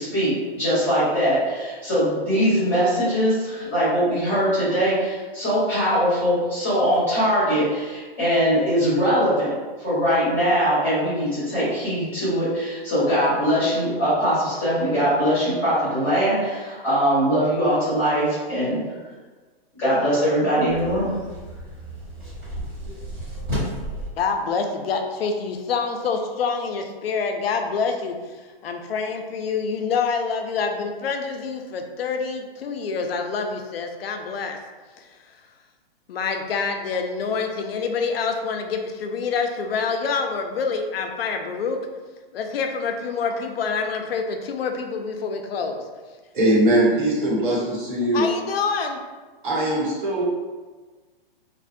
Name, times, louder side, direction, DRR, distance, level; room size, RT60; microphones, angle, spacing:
voice 1, 0.0-18.9 19.8-21.1, equal, 5° left, -14 dB, 0.7 m, -21 dB
sound 1, 20.7-24.1, equal, 15° right, 1.0 m, -32 dB
voice 2, 24.2-28.4 28.6-34.6 36.1-41.8 42.3-45.8 48.1-49.0, left 5 dB, 75° left, 4 dB, 0.5 m, -26 dB
voice 3, 46.3-48.3 49.4-50.2, right 1 dB, 55° right, -5 dB, 0.9 m, -21 dB
2.5 x 2.1 x 2.5 m, 1.4 s
hypercardioid pair, 170°, 30 cm